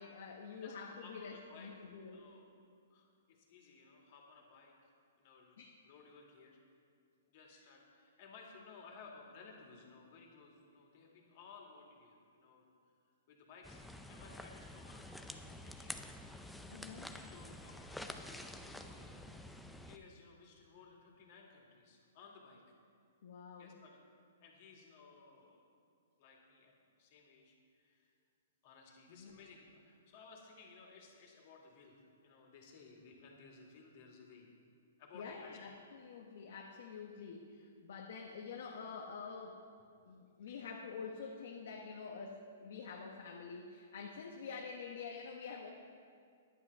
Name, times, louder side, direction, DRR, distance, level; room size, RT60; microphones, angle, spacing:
voice 1, 0.0-2.1 5.6-5.7 16.7-17.2 23.2-23.8 29.1-29.3 35.1-39.6 40.0-45.7, left 5 dB, 65° left, 0 dB, 1.1 m, -47 dB
voice 2, 0.6-1.7 2.1-2.5 2.9-4.9 5.2-5.6 5.8-6.6 7.3-12.7 13.3-16.0 16.4-16.6 17.2-19.5 19.8-22.6 23.6-24.0 24.4-25.7 26.2-28.1 28.6-34.5 35.0-35.6 40.4-40.6, left 4 dB, 50° left, 0 dB, 2.4 m, -58 dB
sound 1, 13.6-20.0, left 1 dB, ahead, 0.5 m, -49 dB
10.5 x 9.6 x 5.5 m, 2.3 s
hypercardioid pair, 145°, 0 cm